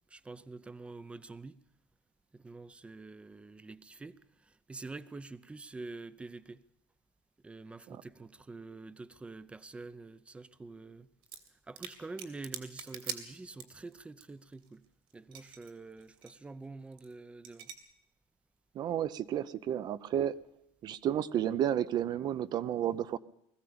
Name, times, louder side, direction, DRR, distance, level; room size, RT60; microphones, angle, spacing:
voice 1, 0.1-1.6 2.3-6.6 7.4-11.1 11.5-14.8 15.1-17.7, right 3 dB, 10° right, 0.7 m, -47 dB
sound 1, 11.2-11.5 11.8-13.9 14.2-14.3 14.5-15.7 16.0-16.3 16.9-17.1 17.4-17.7, right 8 dB, 60° right, 2.9 m, -43 dB
voice 2, 18.7-20.3 20.8-23.2, right 10 dB, 45° right, 0.8 m, -31 dB
20.5 x 15.0 x 8.8 m
cardioid pair, 145°, 10 cm